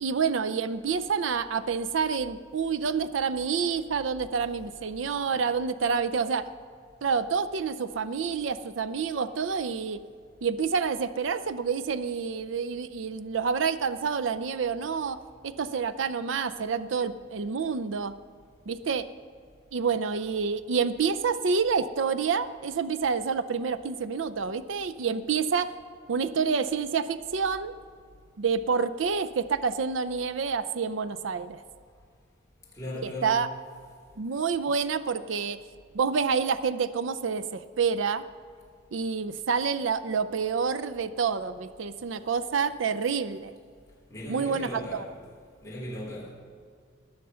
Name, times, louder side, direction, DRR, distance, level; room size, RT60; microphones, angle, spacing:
voice 1, 0.0-6.5 7.0-10.0 10.4-15.2 15.4-18.1 18.7-19.1 19.7-25.7 26.1-27.7 28.4-31.6 33.0-33.5 34.2-35.6 35.9-38.2 38.9-43.5 44.3-45.0, right 5 dB, 75° right, 0.5 m, -28 dB
voice 2, 32.7-33.5 44.1-45.2 45.6-46.3, left 1 dB, 15° left, 3.5 m, -37 dB
20.0 x 6.7 x 5.6 m
head